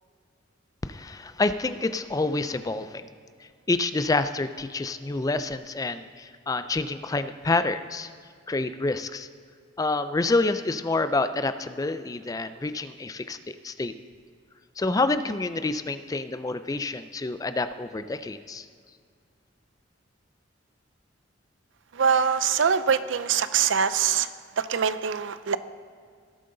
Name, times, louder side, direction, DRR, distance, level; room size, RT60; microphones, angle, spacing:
voice 1, 0.8-3.1 3.4-8.1 8.5-9.3 9.8-13.9 14.8-18.7, left 3 dB, 20° left, 12 dB, 0.4 m, -28 dB
voice 2, 21.9-24.3 24.6-25.6, right 7 dB, 75° right, 14 dB, 0.5 m, -23 dB
18.0 x 7.7 x 3.9 m, 2.1 s
head